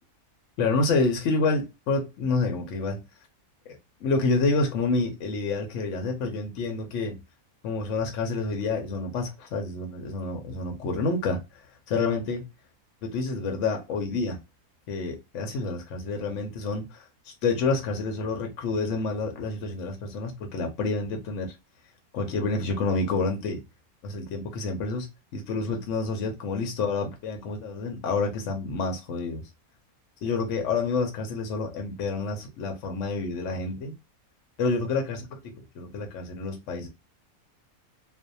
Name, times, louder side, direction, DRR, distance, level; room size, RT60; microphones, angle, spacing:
voice 1, 0.6-3.0 3.7-7.2 7.6-12.4 13.0-14.4 14.9-21.5 22.1-23.6 24.0-29.4 30.2-33.9 34.6-36.9, left 3 dB, 65° left, 0.8 m, -28 dB
2.5 x 2.0 x 2.6 m
omnidirectional pair, 1.5 m